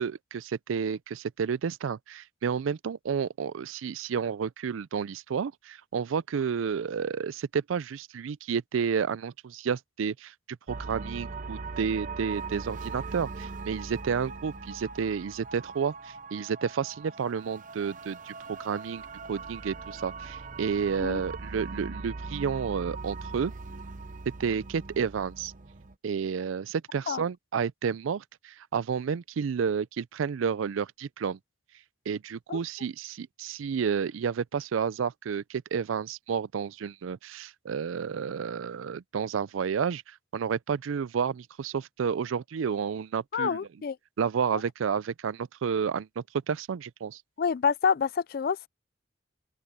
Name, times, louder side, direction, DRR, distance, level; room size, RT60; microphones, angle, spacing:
voice 1, 0.0-19.0 19.3-23.5 24.4-25.5 26.0-31.4 32.1-43.6 44.2-47.2, right 6 dB, 90° right, 0.4 m, -31 dB
sound 1, 10.7-26.0, right 4 dB, 40° right, 0.7 m, -40 dB
voice 2, 43.3-44.0 44.5-44.6 47.4-48.7, left 6 dB, 50° left, 0.4 m, -27 dB
open air
head